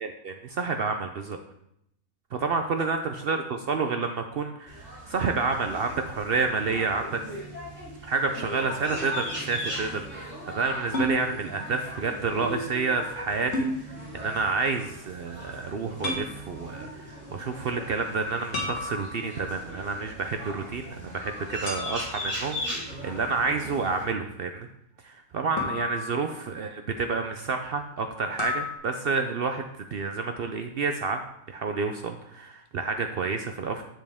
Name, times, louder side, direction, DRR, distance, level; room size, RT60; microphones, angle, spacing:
voice 1, 0.0-1.4 2.3-7.2 8.0-13.7 14.1-24.7 25.0-31.2 31.5-33.8, right 4 dB, 65° right, 6 dB, 0.6 m, -29 dB
sound 1, 4.7-24.0, equal, 5° right, 2.8 m, -39 dB
sound 2, 10.9-11.2 13.5-13.8 16.0-16.3 18.5-19.5 21.7-22.3 25.6-26.5 28.4-28.8, left 2 dB, 60° left, 1.8 m, -31 dB
7.3 x 7.3 x 3.5 m, 0.76 s
omnidirectional pair, 1.5 m